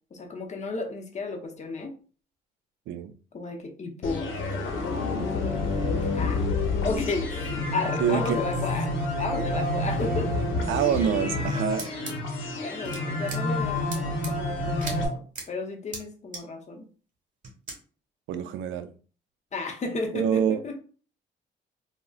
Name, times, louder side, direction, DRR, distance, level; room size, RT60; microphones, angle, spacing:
voice 1, 0.1-1.9 3.3-6.4 6.8-10.4 12.5-16.8 19.5-20.8, left 3 dB, 35° left, 0.7 m, -33 dB
sound 1, 4.0-15.1, left 2 dB, 80° left, 0.8 m, -28 dB
voice 2, 8.0-8.4 10.7-11.9 18.3-18.9 20.1-20.6, right 9 dB, 75° right, 0.4 m, -26 dB
sound 2, 11.8-12.1 12.8-13.0 13.3-13.4 13.9-14.3 14.8-14.9 15.3-15.4 15.9-16.0 16.3-16.4 17.4-17.7, right 3 dB, 40° right, 1.2 m, -36 dB
3.7 x 2.1 x 2.4 m
cardioid pair, 90°, 20 cm